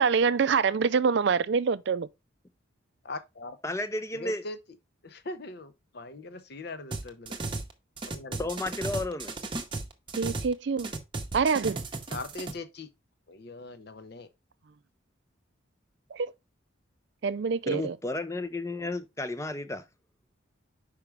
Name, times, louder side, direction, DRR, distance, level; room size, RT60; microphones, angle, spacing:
voice 1, 0.0-2.1 10.2-10.9 11.3-11.8 16.1-16.3 17.2-17.9, right 5 dB, 60° right, 0.4 m, -25 dB
voice 2, 3.0-3.6 4.1-4.6 5.0-7.4 8.1-8.5 12.1-12.9 13.3-14.3, left 2 dB, 55° left, 0.7 m, -41 dB
voice 3, 3.6-4.5 8.4-9.3 17.7-19.8, left 2 dB, 15° left, 0.5 m, -32 dB
sound 1, 6.9-7.7 8.0-10.5 10.8-12.5, right 3 dB, 25° right, 0.8 m, -35 dB
5.8 x 4.9 x 3.3 m
head